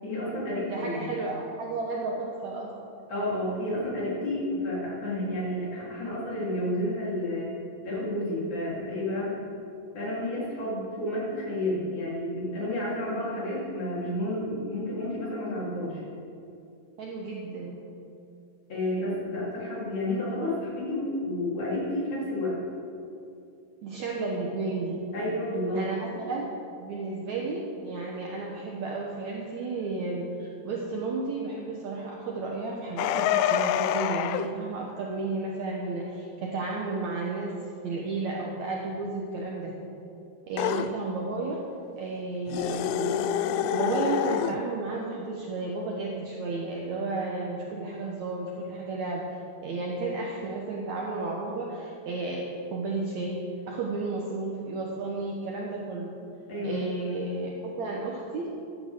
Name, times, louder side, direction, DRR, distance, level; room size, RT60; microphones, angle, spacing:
voice 1, 0.0-1.1 3.1-7.5 7.8-9.3 9.9-16.0 18.7-22.6 25.1-25.8 56.5-56.8, left 1 dB, 50° left, -8 dB, 4.9 m, -30 dB
voice 2, 0.7-2.7 17.0-17.8 23.8-25.0 25.7-26.5 26.8-37.6 37.8-39.7 40.5-41.6 42.0-43.1 43.7-49.2 49.6-56.1 56.6-58.5, right 3 dB, 65° right, -2 dB, 1.9 m, -32 dB
sound 1, 33.0-34.5 40.6-40.9 42.5-44.6, left 10 dB, 90° left, 2.5 m, -26 dB
15.5 x 11.0 x 3.7 m, 2.5 s
omnidirectional pair, 4.4 m